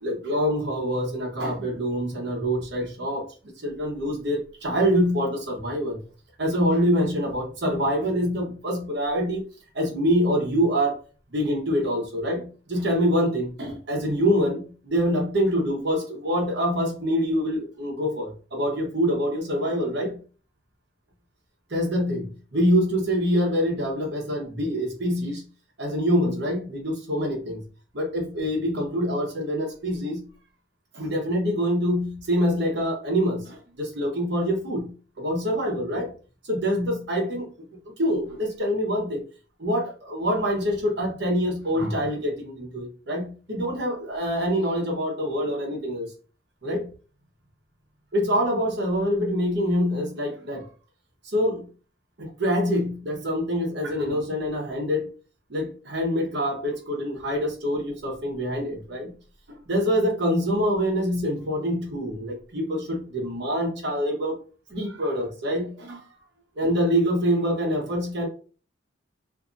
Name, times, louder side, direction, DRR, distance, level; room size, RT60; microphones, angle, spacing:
voice 1, 0.0-6.0 6.4-9.4 9.8-11.0 11.3-20.2 21.7-25.4 25.8-27.6 27.9-30.3 30.9-34.9 35.2-36.1 36.4-37.5 38.0-39.2 39.6-46.1 46.6-46.9 48.1-50.7 51.2-51.6 52.2-55.1 55.5-59.1 59.5-64.4 64.7-66.1 66.6-68.3, equal, 60° right, 1 dB, 1.0 m, -25 dB
2.7 x 2.5 x 2.5 m, 0.36 s
head